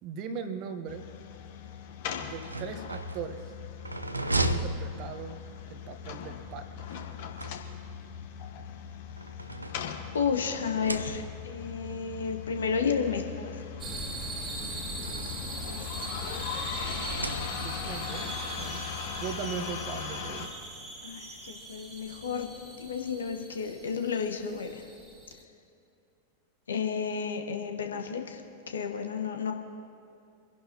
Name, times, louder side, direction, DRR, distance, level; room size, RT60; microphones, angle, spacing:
voice 1, 0.0-1.1 2.2-3.5 4.3-5.4 5.7-6.9 17.6-18.8 19.2-20.5, right 6 dB, 40° right, 9 dB, 1.2 m, -39 dB
sound 1, 0.9-20.5, left 8 dB, 50° left, 1.4 m, -40 dB
sound 2, 2.3-5.6 6.9-8.1 8.9-10.3 10.7-11.6 12.5-12.6 13.0-13.1 14.2-15.6 16.8-18.0, right 1 dB, 85° right, 0.7 m, -36 dB
voice 2, 10.1-13.6 14.6-16.4 21.0-22.5 22.8-24.9 26.7-28.4 28.7-29.5, left 6 dB, 70° left, 4 dB, 1.2 m, -32 dB
sound 3, 13.8-25.4, right 2 dB, 25° right, 2.0 m, -40 dB
26.0 x 11.0 x 3.0 m, 2.5 s
figure-of-eight pair, 90°, 0 cm